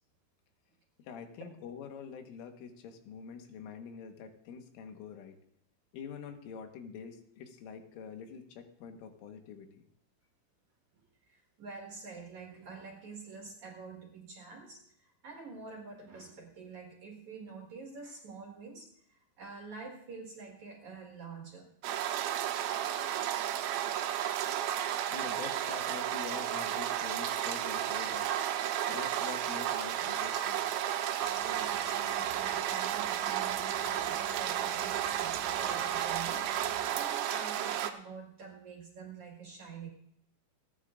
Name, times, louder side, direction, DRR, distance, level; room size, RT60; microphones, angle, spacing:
voice 1, 1.0-5.4 5.9-9.9 25.1-28.4 28.9-30.6, left 6 dB, 90° left, 5 dB, 3.8 m, -45 dB
voice 2, 11.2-21.7 31.4-39.9, right 4 dB, 55° right, 0 dB, 2.2 m, -47 dB
sound 1, 21.8-37.9, right 11 dB, 80° right, 3.0 m, -33 dB
sound 2, 31.2-37.0, left 4 dB, 45° left, 3.4 m, -52 dB
29.0 x 9.8 x 2.5 m, 0.72 s
omnidirectional pair, 5.6 m